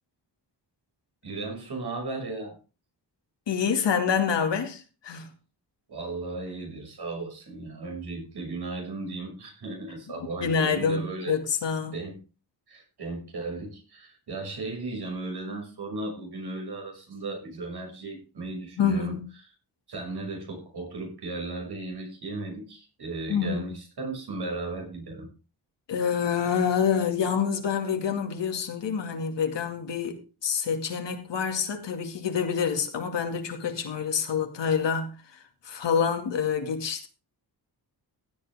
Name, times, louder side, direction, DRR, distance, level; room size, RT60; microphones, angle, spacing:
voice 1, 1.2-2.6 5.9-11.4 11.9-12.2 12.7-19.2 19.9-25.3, right 3 dB, 65° right, 6.3 m, -36 dB
voice 2, 3.5-5.3 10.4-12.0 18.8-19.2 23.3-23.7 25.9-37.1, left 7 dB, 85° left, 2.4 m, -27 dB
16.0 x 9.1 x 3.6 m
wide cardioid pair, 135°, 42 cm